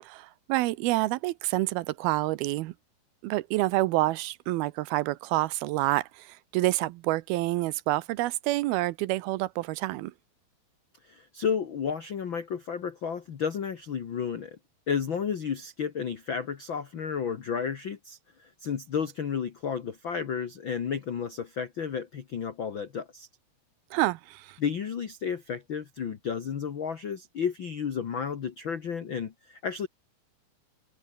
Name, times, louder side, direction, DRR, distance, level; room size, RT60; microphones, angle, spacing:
voice 1, 0.0-2.7 3.2-10.1 23.9-24.6, right 18 dB, 80° right, 2.5 m, -28 dB
voice 2, 11.0-14.6 14.9-23.3 24.6-29.9, left 7 dB, 90° left, 1.0 m, -32 dB
omnidirectional pair, 4.6 m